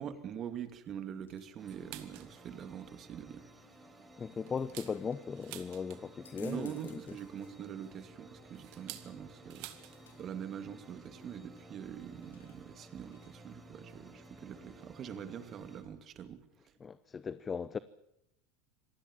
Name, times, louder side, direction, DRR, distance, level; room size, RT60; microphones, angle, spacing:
voice 1, 0.0-3.5 6.4-9.7 10.2-16.4, right 9 dB, 40° right, 2.4 m, -44 dB
sound 1, 0.8-13.6, left 7 dB, 85° left, 3.4 m, -65 dB
sound 2, 1.6-15.8, right 2 dB, 15° right, 4.7 m, -55 dB
sound 3, 1.7-2.4 2.8-2.9 3.3-3.5 4.0-6.3 7.5-10.0 10.3-10.4 10.7-11.0 12.0-12.1 12.9-13.0 13.9-14.1 14.4-14.5 14.7-14.8, right 17 dB, 60° right, 2.0 m, -50 dB
voice 2, 4.2-7.0 16.8-17.8, left 5 dB, 25° left, 0.8 m, -38 dB
26.5 x 18.5 x 7.3 m
hypercardioid pair, 90°, 0 cm